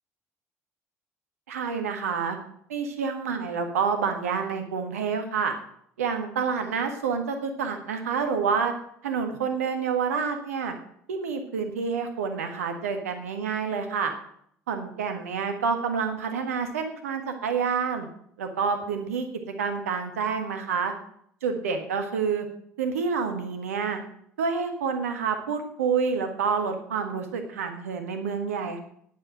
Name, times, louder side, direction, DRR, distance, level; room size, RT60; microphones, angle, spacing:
voice 1, 1.5-2.4 2.7-5.5 6.0-8.7 9.0-10.7 11.1-14.1 14.7-18.1 18.4-19.3 19.6-20.9 21.4-22.5 22.8-24.0 24.4-28.8, right 6 dB, 80° right, 6 dB, 1.5 m, -28 dB
9.9 x 8.2 x 7.6 m, 0.68 s
figure-of-eight pair, 55°, 8 cm